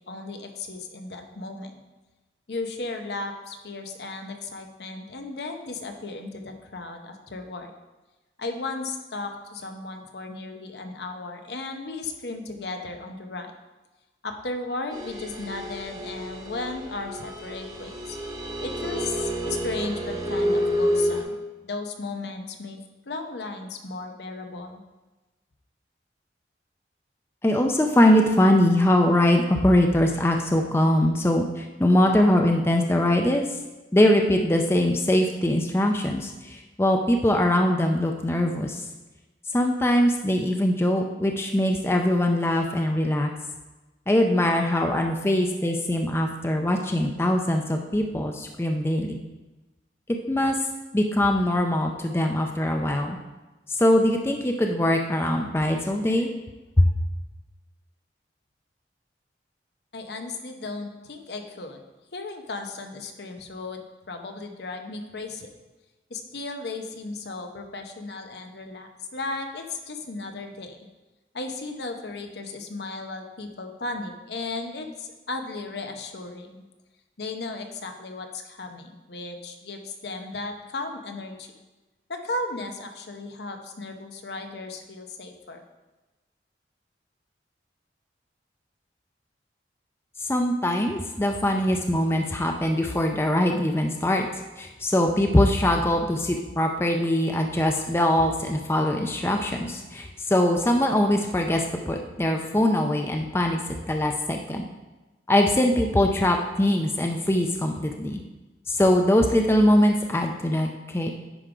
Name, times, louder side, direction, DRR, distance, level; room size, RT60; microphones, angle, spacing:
voice 1, 0.1-1.8 2.5-7.7 8.4-13.5 14.2-18.2 18.6-21.3 21.6-24.8 59.9-61.8 62.1-65.5 66.1-70.8 71.3-76.6 77.2-81.5 82.1-85.6, left 3 dB, 65° left, 5 dB, 0.8 m, -35 dB
sound 1, 14.9-21.2, equal, 20° right, 1.2 m, -29 dB
voice 2, 27.4-33.6 33.9-38.9 39.5-43.3 44.1-49.2 50.3-50.6 50.9-53.2 53.7-56.3 56.8-56.9 90.2-94.3 94.6-104.7 105.3-108.2 108.7-111.1, left 1 dB, 15° left, 3 dB, 0.4 m, -22 dB
10.0 x 3.7 x 4.8 m, 1.1 s
head